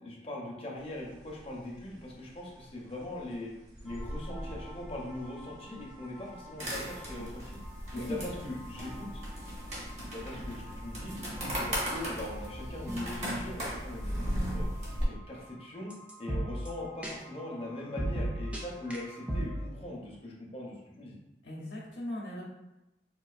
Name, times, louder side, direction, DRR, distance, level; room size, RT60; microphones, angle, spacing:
voice 1, 0.0-3.5 3.8-7.6 7.9-9.2 10.0-11.2 11.5-14.7 15.1-21.2, left 1 dB, 35° left, -2 dB, 0.6 m, -41 dB
sound 1, 0.7-12.2, equal, 75° right, 1.2 m, -49 dB
sound 2, 3.9-19.6, right 1 dB, 5° right, 0.4 m, -42 dB
sound 3, 6.6-15.1, equal, 40° right, 0.9 m, -36 dB
voice 2, 7.9-8.5 21.4-22.4, left 1 dB, 85° left, -5 dB, 0.7 m, -39 dB
3.7 x 2.4 x 2.4 m, 0.96 s
head